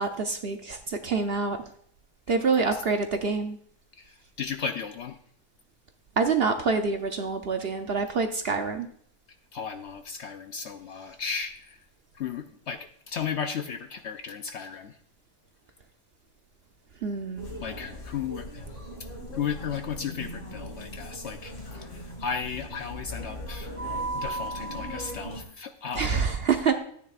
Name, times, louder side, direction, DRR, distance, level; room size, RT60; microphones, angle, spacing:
voice 1, 0.0-1.6 2.3-3.6 6.2-8.9 17.0-17.5 26.0-26.8, right 4 dB, 55° right, 6 dB, 0.8 m, -26 dB
voice 2, 2.3-2.8 4.0-5.2 9.5-11.8 12.1-15.0 17.6-18.6 19.3-23.7 24.1-26.3, left 6 dB, 60° left, 7 dB, 0.8 m, -35 dB
sound 1, 17.4-25.4, right 1 dB, 35° left, 2.1 m, -37 dB
13.5 x 9.4 x 2.4 m, 0.63 s
omnidirectional pair, 1.6 m